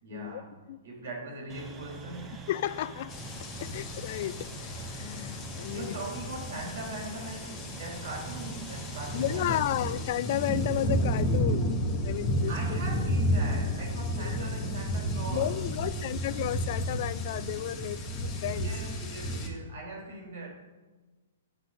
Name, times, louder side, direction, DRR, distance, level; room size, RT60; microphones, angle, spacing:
voice 1, 0.0-2.5 5.5-9.7 12.1-16.1 18.5-20.5, right 2 dB, 55° right, 0 dB, 3.6 m, -41 dB
sound 1, 1.5-9.6, right 3 dB, 15° right, 1.2 m, -45 dB
voice 2, 2.5-3.1 3.6-6.0 9.1-12.8 14.2-14.5 15.3-18.7, left 13 dB, 45° left, 17 dB, 0.3 m, -33 dB
sound 2, 3.1-19.5, equal, 25° left, 2.1 m, -32 dB
9.4 x 6.1 x 6.7 m, 1.2 s
figure-of-eight pair, 115°, 0 cm